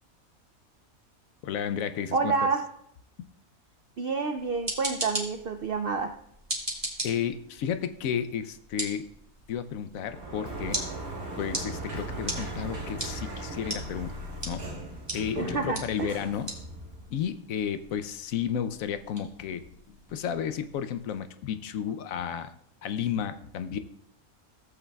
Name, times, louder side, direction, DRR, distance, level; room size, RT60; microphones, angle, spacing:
voice 1, 1.4-2.3 3.2-3.3 7.0-9.1 9.5-10.8 11.4-14.2 14.5-14.7 15.1-16.5 17.1-22.5 22.8-23.8, left 8 dB, 75° left, 10 dB, 1.0 m, -32 dB
voice 2, 2.1-2.6 4.0-6.1 15.4-16.1, right 4 dB, 70° right, 6 dB, 0.5 m, -28 dB
sound 1, 4.4-21.2, right 1 dB, 20° right, 1.6 m, -40 dB
Sliding door, 10.0-17.2, right 2 dB, 85° right, 2.4 m, -38 dB
15.5 x 8.0 x 2.3 m, 0.73 s
omnidirectional pair, 1.5 m